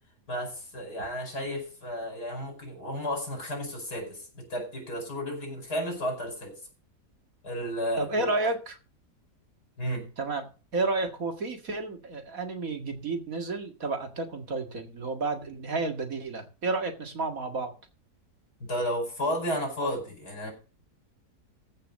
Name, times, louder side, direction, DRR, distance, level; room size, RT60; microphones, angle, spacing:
voice 1, 0.3-6.5 7.4-8.4 9.8-10.1 18.7-20.5, equal, 75° left, 3 dB, 5.8 m, -33 dB
voice 2, 8.0-8.8 10.2-10.4 10.7-17.7, right 3 dB, 55° right, 5 dB, 2.3 m, -31 dB
15.0 x 5.6 x 6.3 m, 0.35 s
omnidirectional pair, 1.7 m